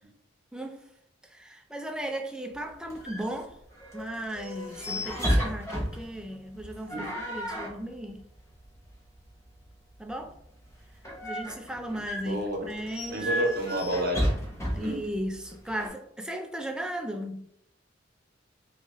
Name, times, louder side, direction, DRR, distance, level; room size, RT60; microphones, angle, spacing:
voice 1, 1.3-3.6 3.9-8.2 10.0-10.3 11.2-13.3 14.7-17.4, right 1 dB, 5° right, 0.4 m, -36 dB
sound 1, 2.5-15.9, equal, 15° left, 0.8 m, -34 dB
voice 2, 12.2-12.7 13.1-14.2 14.8-15.0, right 1 dB, 55° right, 0.8 m, -30 dB
3.9 x 2.4 x 3.0 m
head